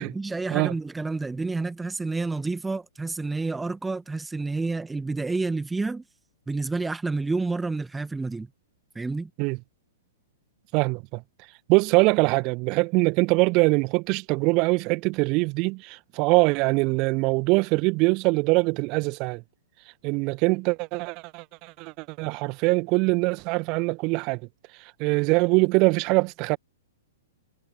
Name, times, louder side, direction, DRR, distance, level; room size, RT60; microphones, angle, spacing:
voice 1, 0.0-6.0 6.5-8.5 8.9-9.3, right 3 dB, 5° right, 1.8 m, -29 dB
voice 2, 10.7-11.2 11.7-19.4 20.0-24.4 25.0-26.6, right 27 dB, 35° right, 2.1 m, -23 dB
figure-of-eight pair, 110°, 0 cm